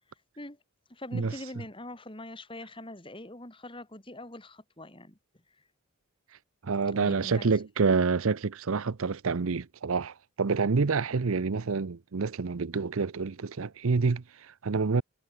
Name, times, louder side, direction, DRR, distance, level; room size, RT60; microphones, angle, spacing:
voice 1, 0.9-5.2 6.9-7.5 7.9-8.0, left 1 dB, 25° left, 3.8 m, -43 dB
voice 2, 6.6-15.0, right 4 dB, 70° right, 0.6 m, -28 dB
head